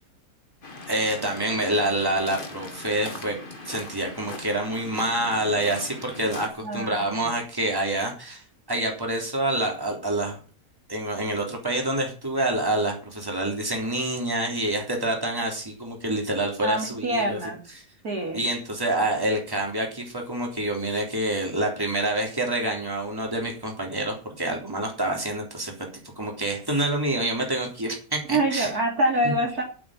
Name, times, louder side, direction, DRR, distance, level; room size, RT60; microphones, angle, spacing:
Waves surf, 0.6-6.5, left 2 dB, 30° left, 2.1 m, -40 dB
voice 1, 0.9-3.4 3.7-10.4 10.9-17.4 17.8-17.9 18.3-25.7 26.2-28.7 29.2-29.3, right 1 dB, 15° right, 0 dB, 3.6 m, -27 dB
voice 2, 6.6-7.3 16.6-17.6 18.0-18.4 28.3-29.6, right 1 dB, 60° right, 1 dB, 3.4 m, -25 dB
8.6 x 8.5 x 8.9 m, 0.37 s
omnidirectional pair, 1.8 m